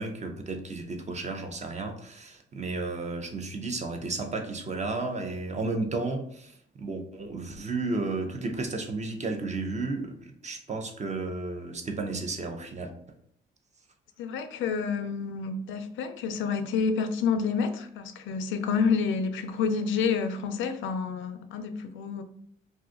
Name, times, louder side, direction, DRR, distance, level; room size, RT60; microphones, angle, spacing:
voice 1, 0.0-12.9, right 3 dB, 35° right, 0.6 m, -33 dB
voice 2, 14.2-22.2, left 5 dB, 75° left, 0.4 m, -29 dB
2.6 x 2.3 x 3.7 m
cardioid pair, 90°, 20 cm